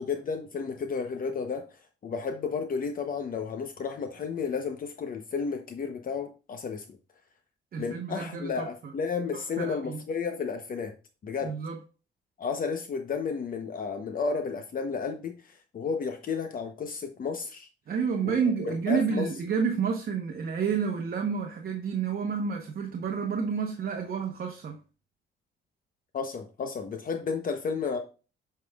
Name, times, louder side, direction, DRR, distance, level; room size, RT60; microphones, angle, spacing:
voice 1, 0.0-1.7 2.0-6.8 7.8-10.9 11.2-11.5 12.4-17.7 18.2-18.4 18.7-19.3 26.1-28.0, left 5 dB, 45° left, 0.8 m, -32 dB
voice 2, 7.7-8.7 9.3-10.0 11.4-11.8 17.9-24.8, right 6 dB, 50° right, 1.0 m, -30 dB
8.4 x 5.8 x 2.3 m
cardioid pair, 125°, 20 cm